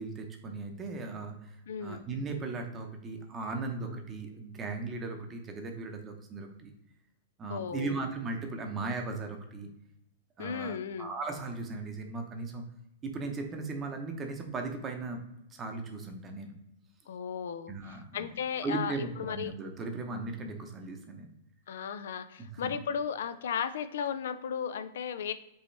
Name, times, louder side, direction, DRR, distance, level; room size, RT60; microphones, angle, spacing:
voice 1, 0.0-6.7 7.4-9.7 10.4-12.6 13.0-15.2 15.5-16.5 17.7-18.3 18.6-21.3 22.4-22.7, right 3 dB, 15° right, 4 dB, 0.7 m, -37 dB
voice 2, 1.7-2.0 7.5-8.0 10.4-11.1 17.1-17.7 18.1-19.5 21.7-25.3, left 7 dB, 75° left, 12 dB, 0.4 m, -35 dB
5.3 x 3.0 x 3.3 m, 0.84 s
supercardioid pair, 160°, 0 cm